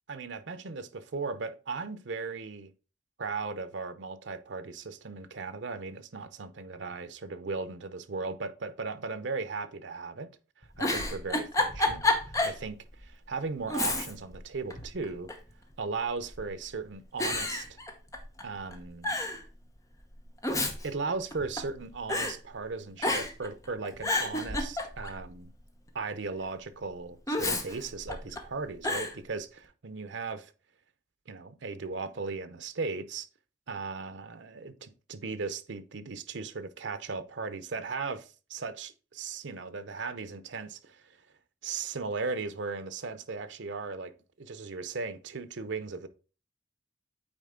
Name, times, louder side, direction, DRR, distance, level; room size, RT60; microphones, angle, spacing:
voice 1, 0.1-2.7 3.2-10.3 10.8-15.3 15.8-17.6 18.4-19.2 20.8-25.5 25.9-30.5 31.3-33.3 33.7-41.2 41.6-44.1 44.4-46.1, right 4 dB, 85° right, 0.7 m, -37 dB
Giggle, 10.6-12.6 13.0-13.1 13.7-14.4 14.7-15.5 16.3-16.7 17.2-18.4 18.7-18.8 19.0-19.4 20.2-21.8 22.1-22.3 23.0-23.5 23.8-25.2 27.3-28.4 28.8-29.1, left 2 dB, 20° left, 0.9 m, -30 dB
8.8 x 4.3 x 3.7 m
head